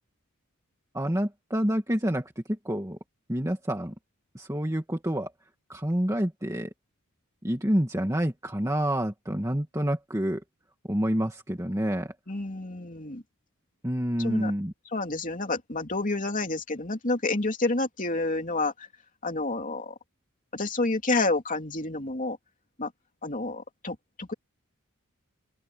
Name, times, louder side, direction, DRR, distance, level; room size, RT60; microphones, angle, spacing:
voice 1, 0.9-3.0 3.3-3.9 4.3-5.3 5.7-6.7 7.4-10.4 10.9-12.1 13.8-14.7, equal, 15° right, 2.0 m, -28 dB
voice 2, 12.3-13.2 14.2-14.5 14.9-18.9 19.2-19.9 20.5-22.4 22.8-22.9 23.2-24.3, left 2 dB, 35° left, 2.9 m, -29 dB
open air
head